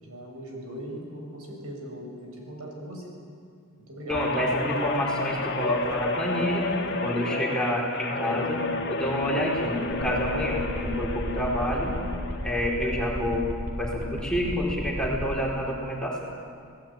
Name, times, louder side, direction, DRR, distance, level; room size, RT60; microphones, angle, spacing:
voice 1, 0.0-3.1 3.9-4.2, equal, 75° right, 0 dB, 7.3 m, -39 dB
Guitar, 4.1-12.7 13.1-13.4, left 3 dB, 50° left, 2.0 m, -31 dB
voice 2, 4.1-6.7 7.0-8.6 8.9-11.9 12.4-13.4 13.8-16.2, equal, 5° left, -4 dB, 4.4 m, -28 dB
sound 1, 9.9-15.3, equal, 40° right, 3.5 m, -33 dB
28.5 x 18.5 x 8.9 m, 2.2 s
head